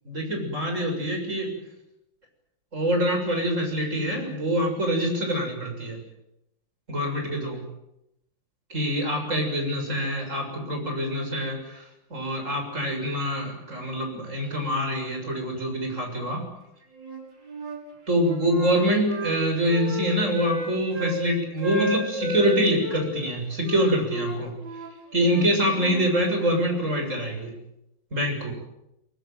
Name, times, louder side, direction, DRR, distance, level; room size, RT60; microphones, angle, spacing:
voice 1, 0.1-1.5 2.7-6.0 6.9-7.6 8.7-11.8 12.1-16.4 18.1-24.5 25.1-27.5 28.1-28.5, equal, 40° right, 3 dB, 7.5 m, -25 dB
Wind instrument woodwind instrument, 17.0-17.8 18.1-21.2 21.6-23.1 23.6-26.1, right 1 dB, 70° right, 6.6 m, -32 dB
23.0 x 22.0 x 9.2 m, 0.84 s
omnidirectional pair, 2.1 m